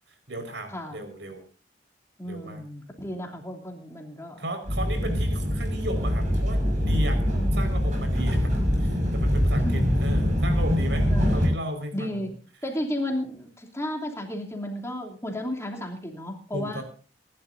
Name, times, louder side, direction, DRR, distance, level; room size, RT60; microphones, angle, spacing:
voice 1, 0.3-1.4 2.2-2.6 4.4-7.2 7.5-8.5 8.8-11.1 11.3-12.1 16.5-16.8, right 1 dB, 75° right, 6 dB, 4.9 m, -34 dB
voice 2, 2.2-4.4 7.2-7.5 9.5-9.9 11.1-11.5 11.9-12.3 12.6-16.8, left 1 dB, 15° left, 1 dB, 2.9 m, -33 dB
sound 1, 4.7-11.5, equal, 45° right, 5.7 m, -24 dB
26.5 x 12.0 x 2.7 m, 0.39 s
head